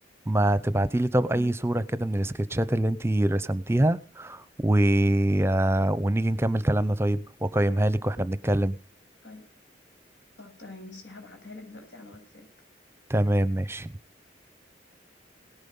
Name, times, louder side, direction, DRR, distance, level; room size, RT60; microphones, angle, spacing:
voice 1, 0.3-8.8 13.1-13.9, right 1 dB, 15° right, 0.7 m, -24 dB
voice 2, 10.4-12.5, left 2 dB, 85° left, 7.5 m, -45 dB
18.0 x 10.5 x 5.5 m
head